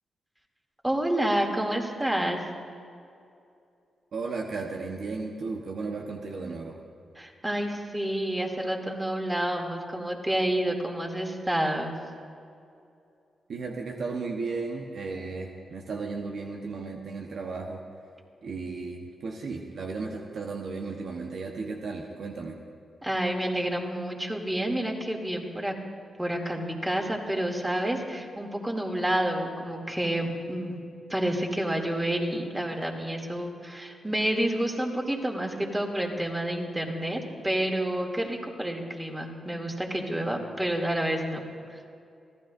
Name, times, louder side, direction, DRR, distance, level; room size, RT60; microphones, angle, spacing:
voice 1, 0.8-2.4 7.2-12.0 23.0-25.7 26.2-30.8 31.1-41.4 41.7-41.8, right 1 dB, 15° right, 1 dB, 2.7 m, -29 dB
voice 2, 4.1-6.8 13.5-17.8 18.4-22.6, right 4 dB, 65° right, 1 dB, 1.1 m, -35 dB
24.5 x 15.5 x 2.6 m, 2.5 s
hypercardioid pair, 40°, 0 cm